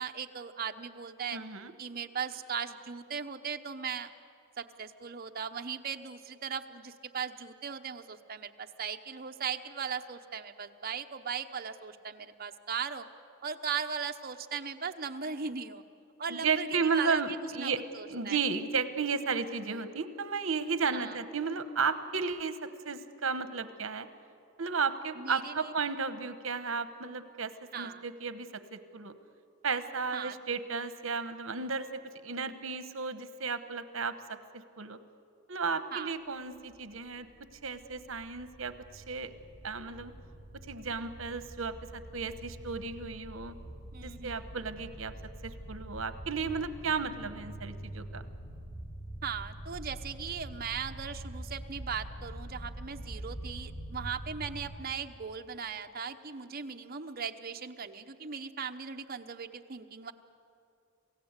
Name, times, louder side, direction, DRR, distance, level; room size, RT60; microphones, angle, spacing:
voice 1, 0.0-1.4 1.8-4.1 4.6-13.0 13.4-15.8 16.2-18.4 20.9-21.2 25.2-25.7 27.7-28.0 30.1-30.4 35.9-36.1 43.9-44.5 49.2-60.1, right 6 dB, 50° right, 6 dB, 0.9 m, -38 dB
voice 2, 1.3-1.7 16.3-17.8 18.1-22.6 22.8-24.1 24.6-29.1 29.6-31.9 32.2-34.1 34.5-35.0 35.5-37.3 37.6-39.3 39.6-40.1 40.7-43.6 44.0-45.1 45.4-48.3, right 5 dB, 75° right, 11 dB, 1.1 m, -33 dB
sound 1, 36.7-54.8, right 1 dB, 80° left, 4.3 m, -45 dB
27.5 x 17.0 x 8.2 m, 2.5 s
head